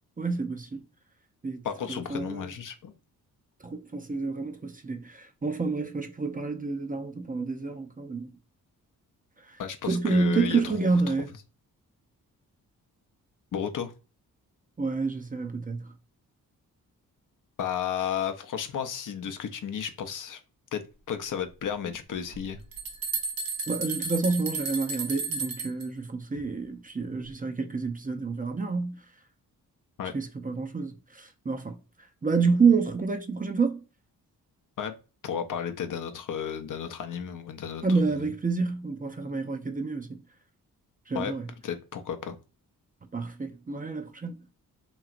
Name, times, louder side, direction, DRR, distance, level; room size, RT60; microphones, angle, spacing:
voice 1, 0.2-0.8 1.4-1.6 1.9-2.5 3.6-8.3 9.5-9.6 9.8-11.3 14.8-15.9 23.7-29.0 30.1-31.8 32.2-33.8 37.8-40.2 41.1-41.4 43.1-44.3, right 4 dB, 20° right, 0.5 m, -28 dB
voice 2, 1.6-2.9 9.6-11.1 13.5-13.9 17.6-20.4 20.7-20.8 21.1-22.6 30.0-30.1 34.8-34.9 35.2-38.3 41.1-41.3 41.6-42.4, left 8 dB, 55° left, 0.6 m, -33 dB
sound 1, 22.3-22.4 22.7-25.9, right 4 dB, 60° right, 1.0 m, -33 dB
3.0 x 2.8 x 2.4 m
supercardioid pair, 50°, 38 cm